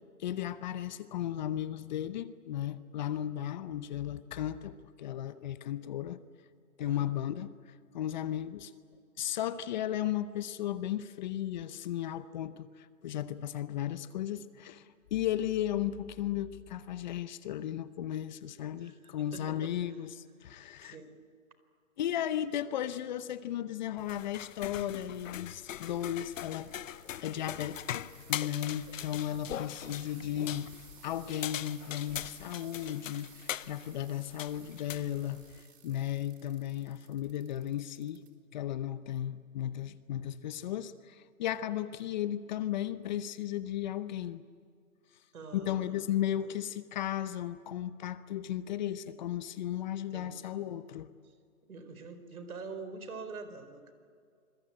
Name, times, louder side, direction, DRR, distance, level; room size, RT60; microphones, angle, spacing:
voice 1, 0.2-6.2 6.8-7.5 7.9-8.7 9.2-21.0 22.0-26.7 27.2-30.7 31.0-38.2 38.5-44.4 45.5-51.1, left 11 dB, 30° left, 13 dB, 0.8 m, -35 dB
voice 2, 6.8-7.1 18.8-19.7 20.8-21.2 45.3-46.6 50.1-50.7 51.6-53.9, right 4 dB, 80° right, 10 dB, 4.6 m, -46 dB
sound 1, 24.0-35.6, left 11 dB, 60° left, 0.8 m, -41 dB
sound 2, 24.9-38.3 38.8-39.3 39.9-40.0, right 9 dB, 45° right, 4.0 m, -58 dB
26.5 x 22.0 x 8.8 m, 2.2 s
hypercardioid pair, 150°, 43 cm